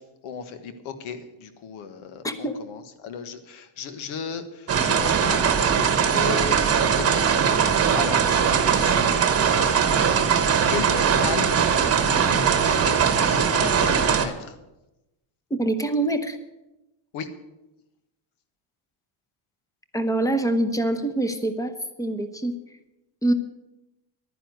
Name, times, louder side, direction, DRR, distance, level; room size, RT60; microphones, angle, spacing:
voice 1, 0.2-5.6 6.1-7.2 7.9-9.0 9.3-10.3 10.7-12.5 12.8-14.6 17.1-17.3, left 6 dB, 75° left, 10 dB, 1.6 m, -35 dB
voice 2, 2.2-2.6 8.1-8.2 15.6-16.4 19.9-22.6 23.2-23.3, right 1 dB, 5° left, 9 dB, 0.9 m, -25 dB
sound 1, 4.7-14.3, right 7 dB, 30° right, 1.2 m, -20 dB
11.5 x 10.0 x 7.9 m, 0.95 s
cardioid pair, 175°, 49 cm